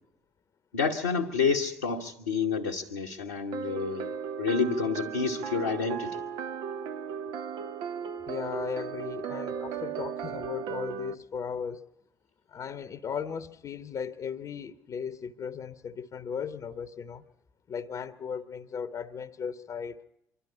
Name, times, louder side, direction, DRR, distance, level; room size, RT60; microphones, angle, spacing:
voice 1, 0.7-6.2, left 5 dB, 80° left, 1.1 m, -29 dB
sound 1, 3.5-11.1, right 7 dB, 65° right, 0.8 m, -36 dB
voice 2, 8.3-11.9 12.5-17.2 17.7-20.0, left 7 dB, 45° left, 0.9 m, -36 dB
25.5 x 12.5 x 9.6 m
figure-of-eight pair, 50°, 8 cm